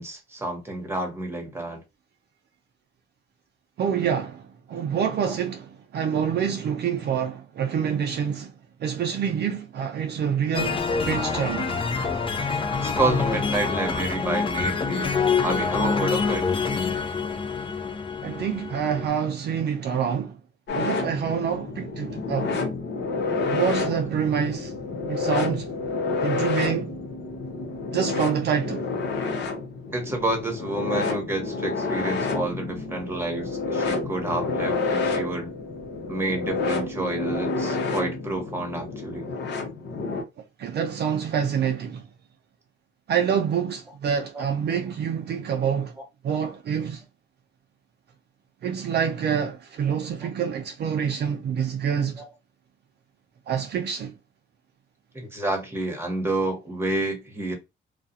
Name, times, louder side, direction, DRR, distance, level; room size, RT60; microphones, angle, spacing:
voice 1, 0.0-1.8 5.3-5.4 12.7-15.1 15.4-16.5 23.9-24.0 29.9-35.5 36.1-39.3 46.0-46.1 52.2-52.3 55.1-57.5, right 2 dB, 10° right, 1.1 m, -29 dB
voice 2, 3.8-8.5 8.8-12.1 18.2-20.4 20.7-22.5 23.4-24.7 25.1-25.7 26.2-27.0 27.9-28.9 40.6-42.0 43.1-45.9 46.2-47.0 48.6-52.2 53.5-54.1, right 7 dB, 55° right, 0.5 m, -27 dB
sound 1, 10.5-19.1, left 5 dB, 25° left, 0.5 m, -26 dB
sound 2, 20.7-40.2, left 3 dB, 60° left, 0.8 m, -29 dB
2.3 x 2.2 x 2.7 m
cardioid pair, 90°, 20 cm